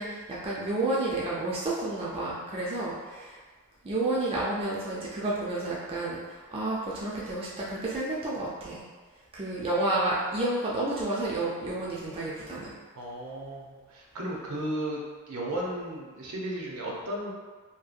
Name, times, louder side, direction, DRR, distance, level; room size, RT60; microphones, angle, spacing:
voice 1, 0.0-3.4 3.8-6.2 6.5-8.8 9.3-12.7, right 2 dB, 25° right, -6 dB, 0.3 m, -30 dB
voice 2, 12.9-15.0 15.3-17.3, right 1 dB, 70° right, -3 dB, 0.6 m, -34 dB
2.7 x 2.2 x 2.4 m, 1.4 s
head